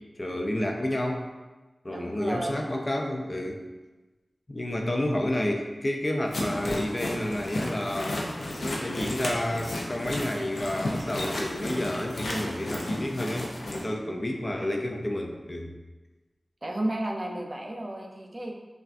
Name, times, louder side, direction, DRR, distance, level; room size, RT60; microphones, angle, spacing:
voice 1, 0.2-1.3 1.8-3.6 4.5-8.2 8.6-15.7, left 1 dB, 40° left, 2 dB, 0.5 m, -30 dB
voice 2, 1.9-2.6 14.1-14.3 16.6-18.5, right 1 dB, 45° right, 1 dB, 0.5 m, -33 dB
sound 1, 6.3-13.8, left 1 dB, 90° left, 0.5 m, -33 dB
5.6 x 2.4 x 2.5 m, 1.2 s
cardioid pair, 40°, 0 cm